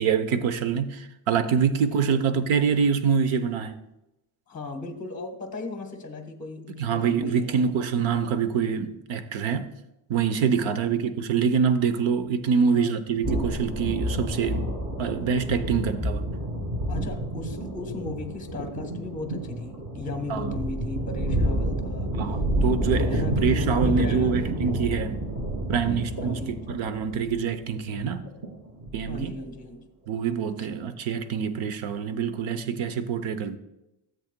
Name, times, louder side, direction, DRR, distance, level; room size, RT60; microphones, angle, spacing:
voice 1, 0.0-3.8 6.8-9.7 10.1-14.7 15.0-16.3 20.3-20.5 22.1-23.1 23.4-25.2 25.7-28.2 28.9-29.3 30.1-33.6, right 6 dB, 65° right, 0.8 m, -25 dB
voice 2, 1.7-2.4 4.5-7.6 10.6-10.9 12.7-13.0 16.9-22.1 23.0-24.6 26.2-26.8 29.0-29.9, left 3 dB, 15° left, 0.9 m, -37 dB
sound 1, 13.2-29.4, right 1 dB, 35° right, 2.3 m, -29 dB
13.5 x 7.6 x 2.2 m
cardioid pair, 130°, 50 cm